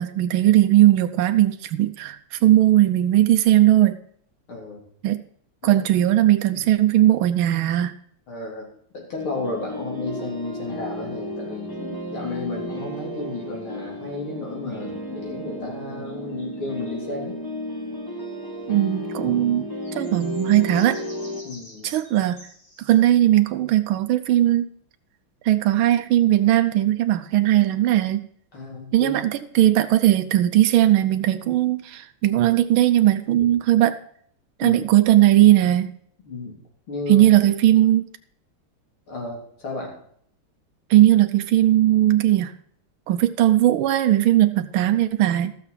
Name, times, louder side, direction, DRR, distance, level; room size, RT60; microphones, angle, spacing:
voice 1, 0.0-4.0 5.0-5.2 5.6-8.0 18.7-19.7 19.9-21.0 21.8-22.4 22.8-24.7 25.4-28.3 28.9-34.0 34.6-35.9 37.1-38.1 40.9-42.5 43.1-45.5, right 13 dB, 75° right, 8 dB, 1.4 m, -18 dB
voice 2, 4.5-4.8 5.6-5.8 8.3-8.7 8.9-17.4 21.4-21.9 28.5-29.2 34.6-34.8 36.3-36.5 36.9-37.3 39.1-39.9, left 3 dB, 70° left, -1 dB, 4.1 m, -33 dB
sound 1, 9.2-21.4, left 1 dB, 10° left, 1.6 m, -33 dB
sound 2, 16.0-17.1 19.8-22.9, equal, 50° left, 4.6 m, -48 dB
13.5 x 6.9 x 5.7 m, 0.64 s
omnidirectional pair, 2.4 m